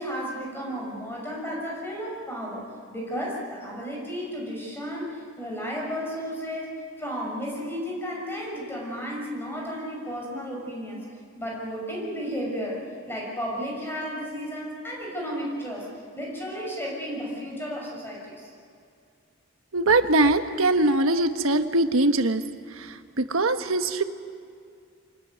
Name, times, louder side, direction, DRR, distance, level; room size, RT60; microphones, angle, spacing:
voice 1, 0.0-6.7 7.0-11.0 11.4-12.8 13.1-15.9 16.2-18.5, equal, 10° left, -3 dB, 6.1 m, -33 dB
voice 2, 19.7-22.4 22.7-24.0, right 2 dB, 90° right, 8 dB, 1.4 m, -22 dB
25.5 x 19.5 x 9.6 m, 2.3 s
head